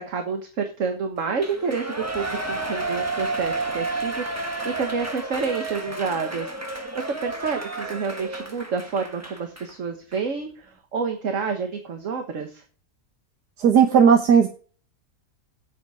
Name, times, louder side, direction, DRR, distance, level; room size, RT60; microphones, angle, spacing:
voice 1, 0.0-12.6, right 5 dB, 55° right, 5 dB, 1.6 m, -29 dB
Shout / Cheering, 1.4-9.7 10.1-10.2, right 2 dB, 10° right, 1.2 m, -31 dB
voice 2, 13.6-14.5, right 7 dB, 80° right, 4 dB, 1.7 m, -15 dB
8.5 x 8.1 x 6.2 m, 0.40 s
omnidirectional pair, 1.7 m